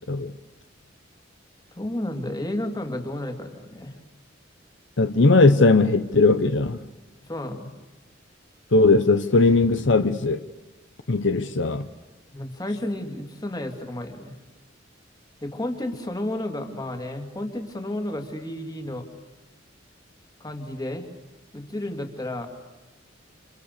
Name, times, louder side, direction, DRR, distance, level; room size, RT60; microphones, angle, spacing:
voice 1, 1.7-4.0 7.3-7.7 12.3-14.3 15.4-19.1 20.4-21.1 21.5-22.5, left 1 dB, 20° left, 2.7 m, -32 dB
voice 2, 5.0-6.8 8.7-10.4 11.1-11.9, left 3 dB, 70° left, 0.9 m, -18 dB
29.5 x 26.5 x 6.8 m
head